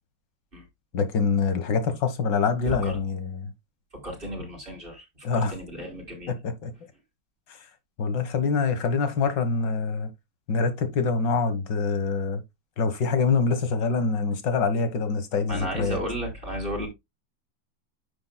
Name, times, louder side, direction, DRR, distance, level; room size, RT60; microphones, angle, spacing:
voice 1, 0.9-3.5 5.2-5.5 6.3-6.7 8.0-10.1 10.5-12.4 12.8-16.0, left 4 dB, 60° left, 2.1 m, -25 dB
voice 2, 2.7-3.0 4.0-6.3 15.5-16.9, equal, 25° right, 4.1 m, -33 dB
9.7 x 7.6 x 2.3 m
omnidirectional pair, 2.2 m